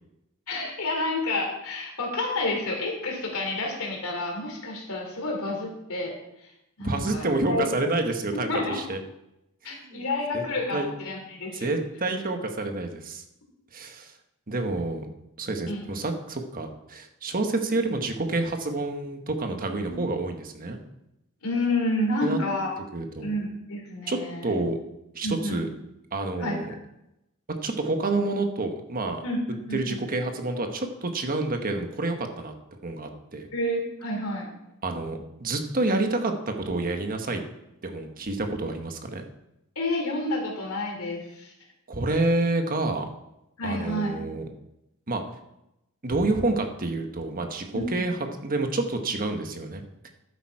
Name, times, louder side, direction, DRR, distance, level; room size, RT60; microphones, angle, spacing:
voice 1, 0.5-6.2 6.8-7.6 8.5-8.8 9.6-11.7 15.7-15.9 19.8-20.0 21.4-22.7 23.2-24.5 25.2-25.6 26.4-26.6 29.2-30.0 33.5-34.5 39.8-41.5 43.6-44.1 47.7-48.0, left 2 dB, 75° left, 1 dB, 3.5 m, -29 dB
voice 2, 6.8-9.0 9.7-10.0 10.3-10.4 10.7-10.9 11.5-13.2 13.7-14.1 14.5-15.1 15.4-20.8 22.2-22.4 22.9-23.3 24.1-24.8 25.1-25.7 26.1-26.7 27.6-29.2 29.7-32.5 32.8-33.5 34.8-37.4 37.8-39.2 41.9-43.1 43.6-44.5 45.1-45.2 46.0-50.1, right 2 dB, 40° right, 5 dB, 1.3 m, -28 dB
12.0 x 8.8 x 4.8 m, 0.86 s
head